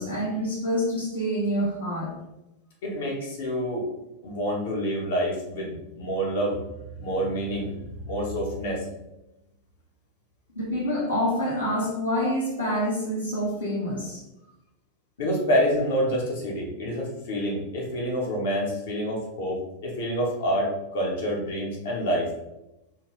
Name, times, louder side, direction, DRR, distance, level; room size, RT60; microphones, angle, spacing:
voice 1, 0.0-2.1 10.5-14.2, equal, 75° left, -6 dB, 1.2 m, -27 dB
voice 2, 2.8-3.9 4.2-6.6 7.0-7.7 8.0-8.8 15.2-22.3, equal, 55° left, -1 dB, 0.9 m, -27 dB
2.7 x 2.6 x 3.2 m, 0.94 s
figure-of-eight pair, 90°, 0 cm